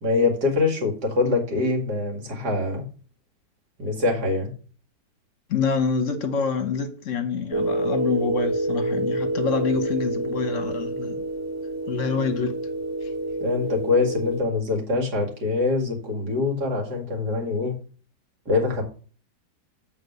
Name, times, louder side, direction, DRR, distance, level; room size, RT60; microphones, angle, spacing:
voice 1, 0.0-2.8 3.8-4.5 13.4-17.8 18.5-18.8, left 3 dB, 70° right, 2.6 m, -24 dB
voice 2, 5.5-11.2 11.9-12.6 13.0-13.1, left 5 dB, 50° left, 1.2 m, -26 dB
sound 1, 7.5-14.4, right 1 dB, 10° right, 1.4 m, -27 dB
8.0 x 4.1 x 6.6 m
omnidirectional pair, 1.8 m